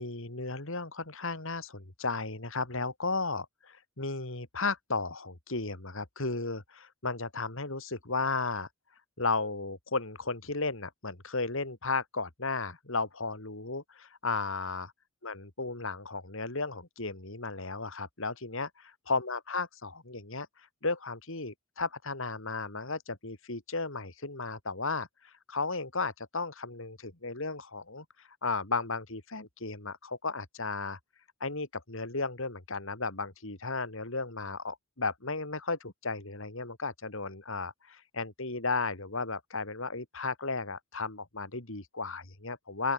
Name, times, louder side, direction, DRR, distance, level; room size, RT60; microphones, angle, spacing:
voice 1, 0.0-8.7 9.2-14.9 15.2-18.7 19.1-20.5 20.8-31.0 31.4-42.9, left 3 dB, 60° left, 2.9 m, -34 dB
open air
head